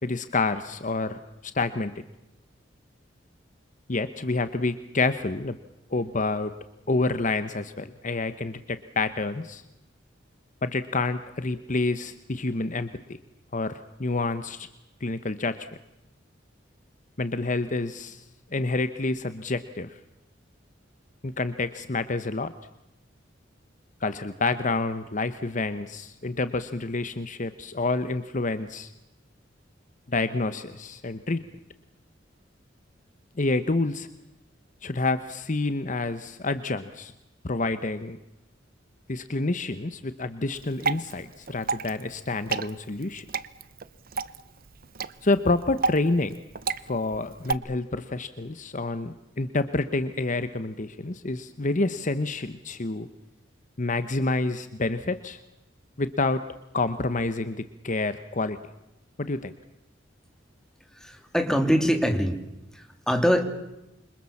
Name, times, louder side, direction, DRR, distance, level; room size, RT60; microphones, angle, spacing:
voice 1, 0.0-2.0 3.9-5.6 5.9-6.5 6.9-9.6 10.6-12.9 13.5-14.7 15.0-15.6 17.2-18.2 18.5-20.0 21.2-22.5 24.0-28.9 30.1-31.4 33.4-34.1 34.8-37.1 37.4-38.2 39.1-43.2 45.2-46.4 46.8-53.1 53.8-55.4 56.0-56.4 56.7-58.6 59.2-59.5, left 3 dB, 40° left, 12 dB, 1.0 m, -28 dB
Water / Drip, 40.5-47.5, right 4 dB, 50° right, 0.9 m, -32 dB
voice 2, 60.9-62.4 62.7-63.4, equal, 5° left, 5 dB, 3.3 m, -23 dB
27.5 x 26.0 x 7.3 m, 0.92 s
head